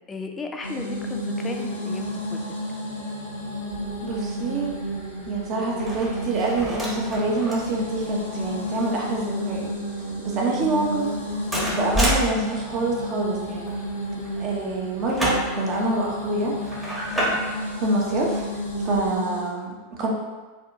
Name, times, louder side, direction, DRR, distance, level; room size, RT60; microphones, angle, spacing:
voice 1, 0.1-2.6 10.2-10.5 14.1-14.4 17.3-17.4, left 3 dB, 20° left, 3 dB, 0.3 m, -35 dB
sound 1, 0.6-19.5, equal, 85° left, 0.5 m, -31 dB
sound 2, 3.7-19.2, equal, 5° right, 0.8 m, -33 dB
voice 2, 4.0-4.8 5.3-13.7 14.4-16.5 17.8-18.4 18.8-20.1, right 3 dB, 40° right, -1 dB, 0.6 m, -26 dB
2.6 x 2.1 x 2.6 m, 1.3 s
figure-of-eight pair, 90°, 0 cm